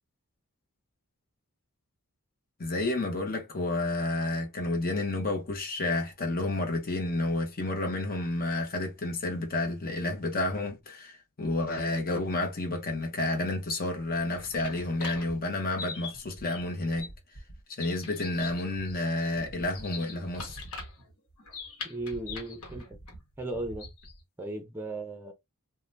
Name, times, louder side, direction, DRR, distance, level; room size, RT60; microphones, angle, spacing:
voice 1, 2.6-17.1 17.7-20.6, left 2 dB, 40° left, 0.9 m, -30 dB
sound 1, 14.0-24.2, left 3 dB, 70° left, 1.1 m, -43 dB
voice 2, 21.8-23.0 23.4-23.9 24.4-25.3, right 2 dB, 10° right, 0.6 m, -36 dB
2.7 x 2.2 x 3.3 m
head